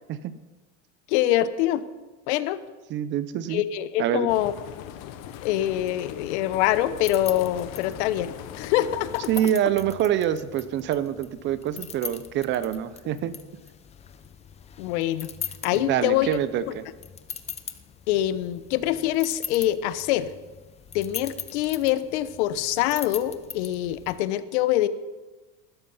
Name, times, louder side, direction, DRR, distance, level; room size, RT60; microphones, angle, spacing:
voice 1, 1.1-1.8 2.3-2.6 3.5-4.5 5.4-9.3 14.8-15.3 15.6-16.4 16.7-16.8 18.1-20.3 20.9-24.9, left 13 dB, 75° left, 14 dB, 1.1 m, -25 dB
voice 2, 2.9-3.6 4.0-4.3 9.3-13.3 15.7-16.8, right 10 dB, 35° right, 14 dB, 0.7 m, -26 dB
sound 1, 4.3-9.7, left 10 dB, 50° left, 1.3 m, -40 dB
sound 2, 6.9-24.2, left 8 dB, 20° left, 0.7 m, -41 dB
19.0 x 12.5 x 5.6 m, 1.2 s
cardioid pair, 160°, 35 cm